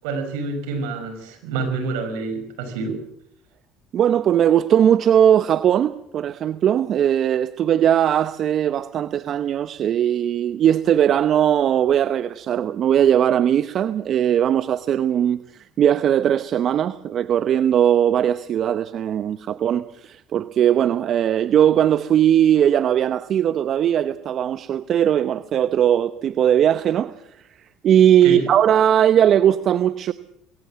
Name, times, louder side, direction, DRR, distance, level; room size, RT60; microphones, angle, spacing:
voice 1, 0.0-3.1 28.2-28.5, right 4 dB, 75° right, 7 dB, 5.5 m, -27 dB
voice 2, 3.9-15.4 15.8-27.1 27.8-30.1, right 10 dB, 50° right, 13 dB, 0.9 m, -19 dB
21.5 x 18.0 x 7.5 m, 0.73 s
hypercardioid pair, 75°, 0 cm